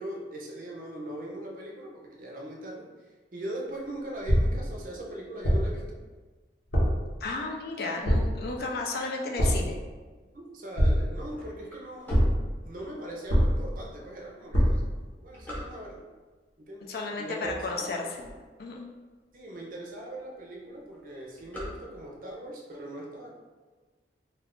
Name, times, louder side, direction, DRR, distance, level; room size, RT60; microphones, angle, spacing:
voice 1, 0.0-2.9 3.3-6.0 10.3-12.2 12.6-14.8 15.2-16.0 16.6-17.9 19.3-23.3, right 1 dB, 50° right, -1 dB, 0.5 m, -40 dB
sound 1, 4.2-4.7 5.4-5.8 6.7-7.1 8.0-8.5 9.4-9.8 10.8-11.3 12.1-12.5 13.3-13.8 14.5-15.0, equal, 80° left, 0.8 m, -24 dB
voice 2, 7.2-9.7 16.9-18.1 18.6-18.9, left 3 dB, 55° left, 0 dB, 0.4 m, -33 dB
sound 2, 11.3-13.1 13.7-13.8 14.5-16.2 16.8-17.0 17.3-18.9 19.4-19.5 19.7-19.8 20.1-20.4 20.7-22.3, equal, 10° left, 0.7 m, -40 dB
2.3 x 2.3 x 3.6 m, 1.3 s
head